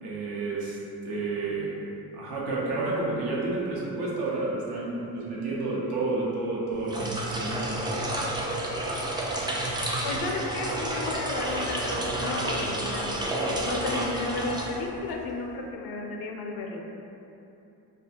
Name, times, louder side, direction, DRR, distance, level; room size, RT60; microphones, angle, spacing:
voice 1, 0.0-0.8 1.0-1.7 2.1-7.6, right 3 dB, 65° right, -5 dB, 0.8 m, -30 dB
sound 1, 6.8-15.2, right 1 dB, 10° right, 0.3 m, -30 dB
voice 2, 10.0-13.3 13.6-16.8, left 3 dB, 55° left, 0 dB, 0.5 m, -33 dB
2.3 x 2.1 x 2.8 m, 2.7 s
hypercardioid pair, 50°, 44 cm